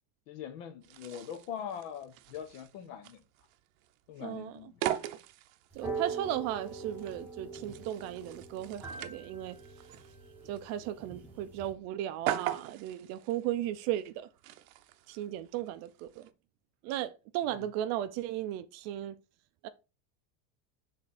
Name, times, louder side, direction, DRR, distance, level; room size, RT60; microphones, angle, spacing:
voice 1, 0.3-3.2 4.1-4.8 17.6-17.7, left 8 dB, 65° left, 1.1 m, -42 dB
sound 1, 0.8-16.3, right 12 dB, 90° right, 0.7 m, -42 dB
voice 2, 4.2-4.6 5.7-9.6 10.5-14.3 15.1-16.3 16.8-19.2 19.6-19.7, right 12 dB, 45° right, 0.4 m, -36 dB
sound 2, 5.7-11.7, right 4 dB, 5° right, 1.0 m, -43 dB
6.5 x 3.6 x 4.1 m
supercardioid pair, 155°, 40 cm